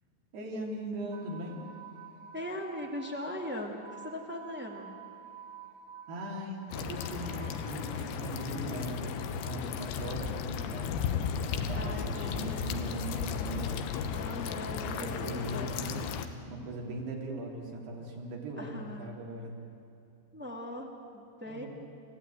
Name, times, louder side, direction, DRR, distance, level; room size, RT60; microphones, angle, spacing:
voice 1, 0.3-1.6 6.1-11.0 11.7-13.9 14.6-16.0 16.4-19.5 21.5-21.7, right 1 dB, 70° right, -1 dB, 5.4 m, -39 dB
sound 1, 1.1-8.6, right 8 dB, 90° right, 3.1 m, -51 dB
voice 2, 2.3-5.0 11.7-12.7 14.1-16.1 18.6-19.2 20.3-21.7, left 1 dB, 15° right, 0 dB, 0.3 m, -40 dB
sound 2, 6.7-16.3, left 7 dB, 85° left, 3.5 m, -35 dB
29.5 x 15.5 x 9.4 m, 2.7 s
omnidirectional pair, 5.0 m